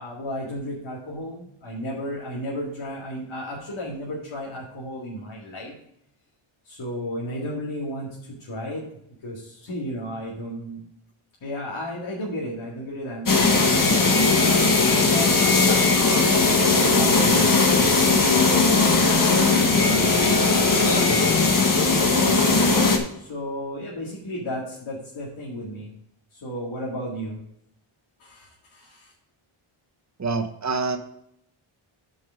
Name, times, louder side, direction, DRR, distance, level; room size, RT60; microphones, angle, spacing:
voice 1, 0.0-5.7 6.6-8.9 9.2-10.8 11.4-16.0 16.8-20.4 20.8-21.6 23.2-25.9 26.3-27.4 28.2-29.1, equal, 70° left, -4 dB, 2.2 m, -34 dB
sound 1, 13.3-23.0, left 3 dB, 40° left, 1.4 m, -18 dB
voice 2, 30.2-31.0, right 4 dB, 35° right, 7 dB, 0.9 m, -26 dB
9.1 x 5.5 x 5.1 m, 0.76 s
wide cardioid pair, 155°, 50 cm